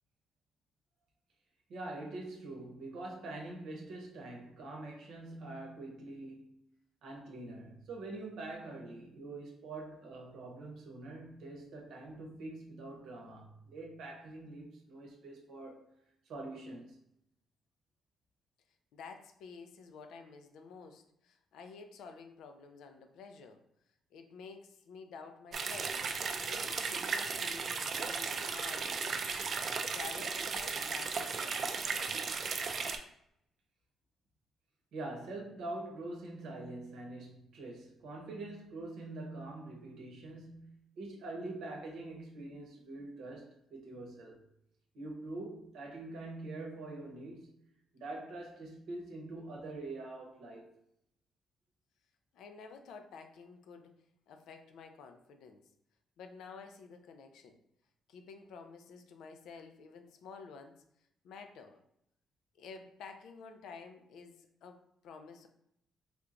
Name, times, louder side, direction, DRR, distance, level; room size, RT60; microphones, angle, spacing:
voice 1, 1.7-6.6 7.0-15.8 16.3-17.0 34.9-44.4 44.9-47.6 47.9-50.7, right 2 dB, 80° right, 0.8 m, -44 dB
voice 2, 18.9-23.6 24.1-29.2 29.9-32.0 52.3-54.0 54.3-55.6 56.2-57.6 58.1-60.8 61.2-61.8 62.5-65.5, left 5 dB, 80° left, 0.4 m, -51 dB
sound 1, 25.5-33.0, right 5 dB, 50° right, 0.4 m, -36 dB
3.5 x 2.9 x 2.5 m
cardioid pair, 90°, 0 cm